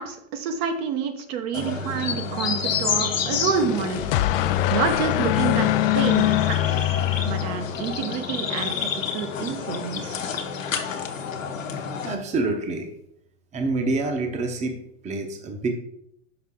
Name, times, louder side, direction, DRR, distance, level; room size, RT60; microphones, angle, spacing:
voice 1, 0.0-4.0 4.3-6.9 7.2-10.2, right 6 dB, 55° right, 6 dB, 0.9 m, -28 dB
sound 1, 1.5-12.2, left 6 dB, 90° left, 1.0 m, -29 dB
sound 2, 3.4-8.0, left 14 dB, 50° left, 0.4 m, -23 dB
voice 2, 12.0-12.9 13.5-15.7, right 3 dB, 20° right, 4 dB, 0.9 m, -27 dB
5.9 x 5.5 x 3.7 m, 0.72 s
hypercardioid pair, 110°, 38 cm